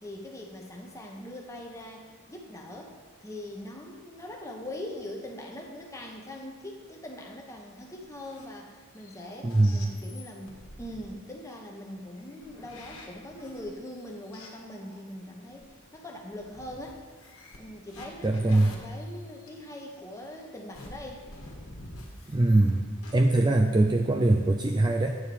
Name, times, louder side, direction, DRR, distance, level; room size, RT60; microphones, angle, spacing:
voice 1, 0.0-17.0 17.6-21.3, left 1 dB, 15° left, 0 dB, 1.0 m, -42 dB
sound 1, 7.8-8.6 9.0-11.1 12.2-15.0 15.6-15.7 16.3-19.5 20.7-22.7 23.0-23.1, left 1 dB, 70° left, 1.6 m, -48 dB
voice 2, 9.4-9.9 18.2-18.8 22.3-22.8 23.1-25.2, right 2 dB, 20° right, 3 dB, 0.4 m, -22 dB
8.8 x 4.5 x 6.8 m, 1.5 s
head